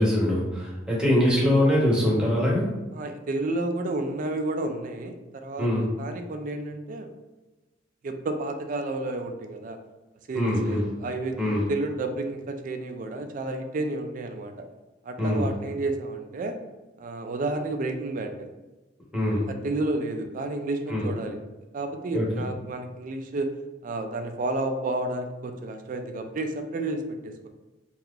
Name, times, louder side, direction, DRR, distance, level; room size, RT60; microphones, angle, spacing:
voice 1, 0.0-2.7 5.6-5.8 10.3-10.8 11.4-11.6 15.2-15.5 19.1-19.4 20.9-21.1 22.1-22.2, left 1 dB, 5° right, -5 dB, 0.9 m, -23 dB
voice 2, 2.9-5.7 6.0-7.1 8.0-9.8 10.3-14.7 15.0-16.6 17.0-18.5 19.5-21.4 21.7-23.5 23.8-27.5, right 2 dB, 45° right, 6 dB, 0.3 m, -31 dB
2.8 x 2.4 x 3.6 m, 1.1 s
head